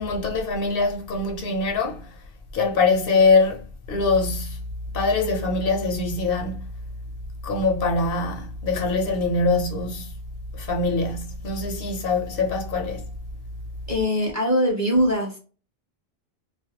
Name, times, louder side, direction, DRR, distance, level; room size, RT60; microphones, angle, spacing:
voice 1, 0.0-2.1 2.5-4.6 4.9-6.6 7.4-10.1 10.5-13.1, left 3 dB, 70° left, 0.7 m, -23 dB
voice 2, 13.9-15.4, equal, 20° right, 0.7 m, -22 dB
2.3 x 2.1 x 2.8 m
omnidirectional pair, 1.0 m